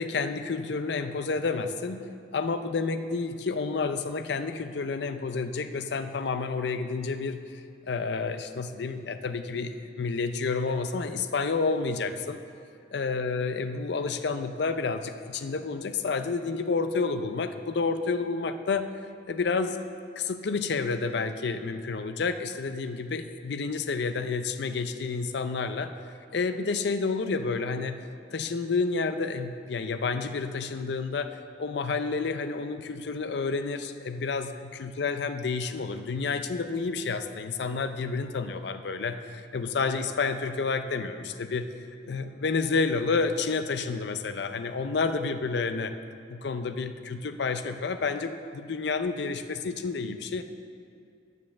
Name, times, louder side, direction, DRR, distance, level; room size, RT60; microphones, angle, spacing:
voice 1, 0.0-2.0 2.3-7.4 7.9-12.4 12.9-18.9 19.3-19.8 20.2-25.9 26.3-28.0 28.3-41.6 42.0-45.9 46.3-50.4, left 4 dB, 60° left, 9 dB, 0.5 m, -30 dB
9.4 x 5.4 x 7.1 m, 2.3 s
head